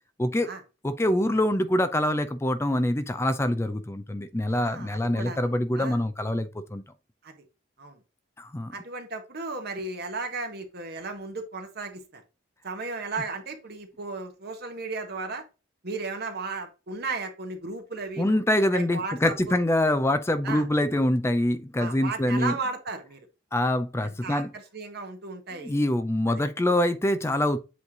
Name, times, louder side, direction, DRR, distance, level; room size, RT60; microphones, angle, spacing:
voice 1, 0.2-0.5 0.8-6.8 8.4-8.7 18.2-22.6 23.5-24.5 25.6-27.6, left 1 dB, 15° left, 0.5 m, -25 dB
voice 2, 4.5-5.5 5.7-6.0 7.2-7.3 7.8-8.0 8.7-12.2 12.6-15.4 15.8-18.4 18.7-19.6 20.4-20.6 21.8-23.2 24.0-25.7 26.3-26.4, right 3 dB, 55° right, 1.6 m, -35 dB
8.0 x 3.2 x 3.8 m
head